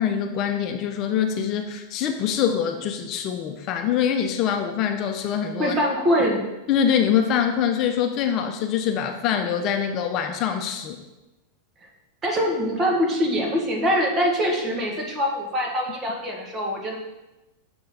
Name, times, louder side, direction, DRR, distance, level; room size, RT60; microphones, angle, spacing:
voice 1, 0.0-5.8 6.7-11.0, left 8 dB, 45° left, 5 dB, 0.6 m, -24 dB
voice 2, 5.6-6.5 12.2-17.0, equal, 25° right, 0 dB, 1.6 m, -23 dB
6.8 x 3.9 x 5.5 m, 0.99 s
supercardioid pair, 125°, 0 cm